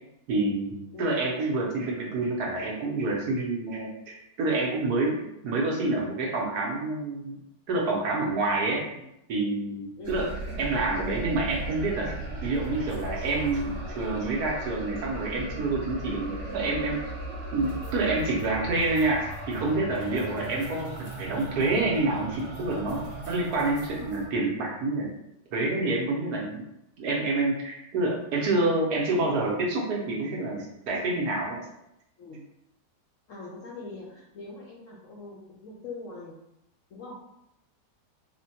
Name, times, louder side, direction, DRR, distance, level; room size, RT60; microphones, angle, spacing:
voice 1, 0.3-7.3 7.7-8.8 9.3-10.3 10.6-12.1 12.4-17.0 17.5-25.1 25.5-26.6 27.0-31.6, right 2 dB, 70° right, -2 dB, 1.2 m, -28 dB
sound 1, 10.0-24.3, right 1 dB, 10° right, 1.0 m, -37 dB
voice 2, 33.3-36.4 36.9-37.2, left 3 dB, 70° left, -5 dB, 0.8 m, -42 dB
3.6 x 2.1 x 2.7 m, 0.82 s
omnidirectional pair, 1.9 m